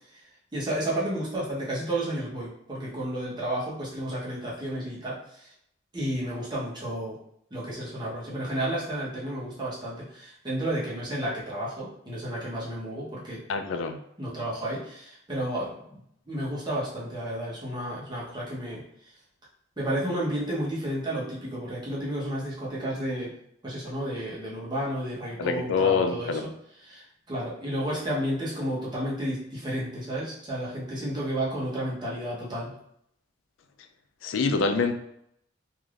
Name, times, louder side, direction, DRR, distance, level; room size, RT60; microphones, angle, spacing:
voice 1, 0.5-5.5 5.9-7.2 7.5-13.4 14.2-16.0 16.3-18.8 19.8-23.3 23.6-26.5 26.9-32.8, right 1 dB, 25° right, -6 dB, 0.9 m, -32 dB
voice 2, 13.5-14.0 25.4-26.4 34.2-34.9, left 5 dB, 80° left, 6 dB, 0.4 m, -25 dB
3.3 x 2.6 x 2.4 m, 0.74 s
head